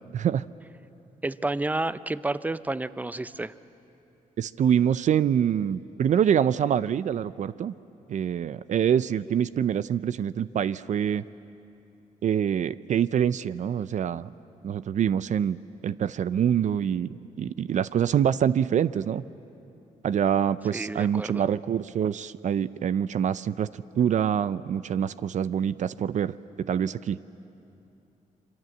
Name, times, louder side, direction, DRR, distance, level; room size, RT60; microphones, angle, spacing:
voice 1, 0.1-0.4 4.4-7.7 8.1-11.2 12.2-14.3 14.6-15.6 15.8-19.2 20.0-23.7 24.0-27.2, right 9 dB, 60° right, 15 dB, 0.5 m, -25 dB
voice 2, 1.2-3.5 20.7-21.4, right 2 dB, 10° right, 14 dB, 0.6 m, -30 dB
27.5 x 25.0 x 7.9 m, 2.8 s
cardioid pair, 95°, 14 cm